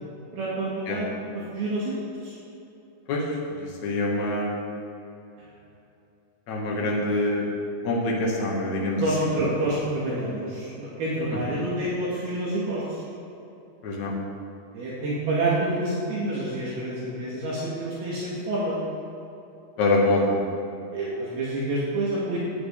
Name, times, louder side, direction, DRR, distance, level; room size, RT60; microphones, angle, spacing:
voice 1, 0.3-1.3 1.5-1.9 2.2-2.3 6.8-6.9 9.0-13.0 14.7-18.8 20.9-22.4, right 1 dB, 65° right, -7 dB, 3.6 m, -28 dB
voice 2, 3.5-4.7 6.5-7.4 7.8-9.3 13.8-14.1 19.8-20.5, left 2 dB, 50° left, -3 dB, 2.6 m, -25 dB
16.0 x 9.4 x 3.6 m, 2.9 s
omnidirectional pair, 5.2 m